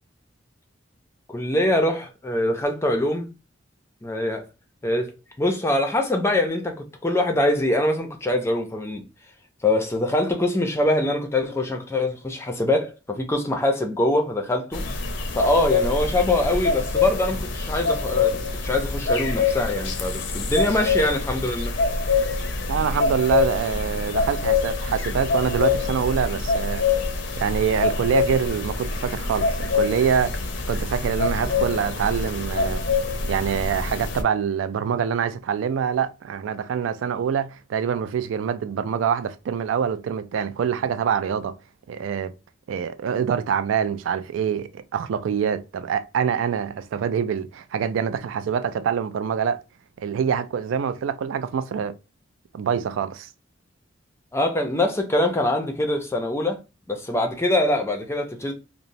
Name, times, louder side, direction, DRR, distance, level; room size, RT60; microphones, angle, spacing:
voice 1, 1.3-3.3 4.0-4.5 4.8-5.1 5.4-9.0 9.6-14.8 15.3-21.7 54.3-56.6 56.9-58.5, left 1 dB, 15° left, 0.4 m, -23 dB
sound 1, 14.7-34.2, left 4 dB, 70° left, 0.5 m, -25 dB
voice 2, 22.7-26.8 27.4-30.3 30.7-32.8 33.3-41.6 41.9-42.3 42.7-49.6 50.0-51.9 52.5-53.3, right 7 dB, 85° right, 0.3 m, -25 dB
2.9 x 2.0 x 2.5 m
head